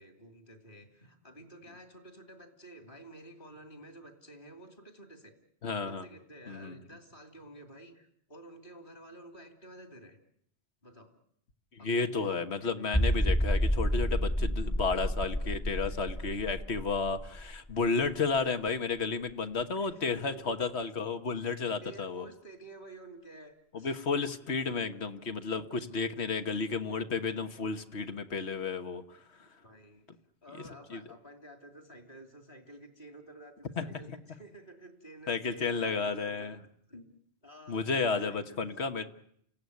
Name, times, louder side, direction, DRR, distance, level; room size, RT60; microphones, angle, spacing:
voice 1, 0.0-5.3 5.8-10.2 10.8-11.1 11.8-12.3 19.7-20.5 21.4-24.0 29.6-30.1 30.4-36.5 36.9-37.1 37.4-37.8 38.2-38.6, right 1 dB, 50° left, 6 dB, 3.1 m, -51 dB
voice 2, 5.6-6.1 6.5-6.8 11.7-22.3 23.7-29.2 30.9-31.0 33.8-33.9 35.3-36.6 37.7-39.0, left 4 dB, 75° left, 8 dB, 1.5 m, -32 dB
sound 1, 12.9-18.4 18.7-18.8 19.3-19.4, equal, 15° left, 1.1 m, -30 dB
29.0 x 16.0 x 9.5 m, 0.70 s
omnidirectional pair, 1.1 m